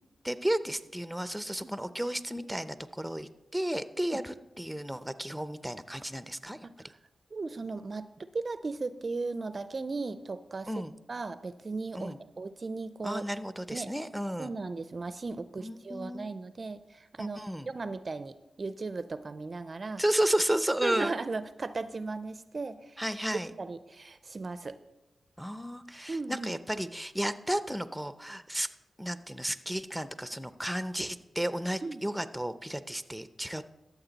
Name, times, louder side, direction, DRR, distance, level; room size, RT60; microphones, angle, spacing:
voice 1, 0.2-6.7 10.7-10.9 11.9-12.2 13.0-14.5 15.6-16.3 17.2-17.7 20.0-21.1 23.0-23.5 25.4-28.7 29.0-33.6, right 1 dB, 5° right, 12 dB, 0.6 m, -33 dB
voice 2, 7.3-8.1 8.3-13.2 13.7-13.9 14.4-20.0 20.8-23.0 23.6-24.8 26.1-26.5 31.8-32.0, right 3 dB, 50° right, 13 dB, 0.4 m, -37 dB
13.0 x 7.1 x 4.0 m, 0.95 s
cardioid pair, 55°, 0 cm